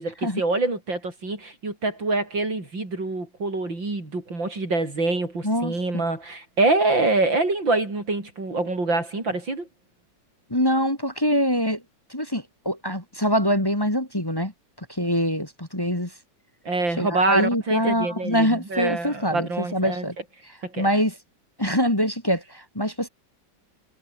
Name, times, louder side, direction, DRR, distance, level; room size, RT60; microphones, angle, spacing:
voice 1, 0.0-9.7 16.7-20.0 20.6-20.9, right 2 dB, 85° right, 7.1 m, -25 dB
voice 2, 5.4-6.0 10.5-11.8 12.1-14.5 14.8-16.1 17.0-20.2 20.4-21.2 21.6-23.1, equal, 10° left, 3.0 m, -24 dB
omnidirectional pair, 2.0 m